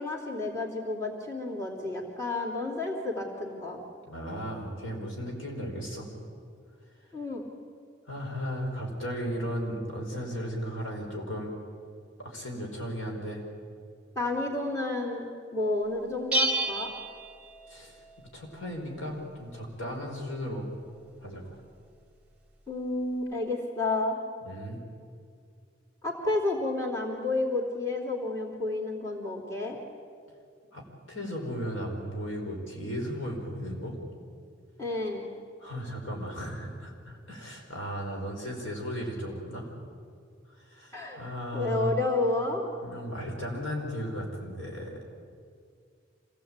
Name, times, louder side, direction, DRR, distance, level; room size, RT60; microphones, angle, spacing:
voice 1, 0.0-3.8 7.1-7.4 14.1-15.3 15.5-16.9 22.7-24.2 26.0-29.8 34.8-35.2 40.9-41.2 41.5-42.6, left 2 dB, 15° left, -1 dB, 3.0 m, -30 dB
voice 2, 4.0-6.1 8.1-11.5 12.2-13.4 17.7-18.0 18.3-20.7 21.2-21.4 24.4-24.8 30.7-34.0 35.6-39.7 40.7-42.0 42.8-45.0, equal, 85° left, 1 dB, 5.0 m, -35 dB
Bell, 16.3-18.1, right 2 dB, 5° right, 2.4 m, -30 dB
26.0 x 17.5 x 8.9 m, 2.2 s
head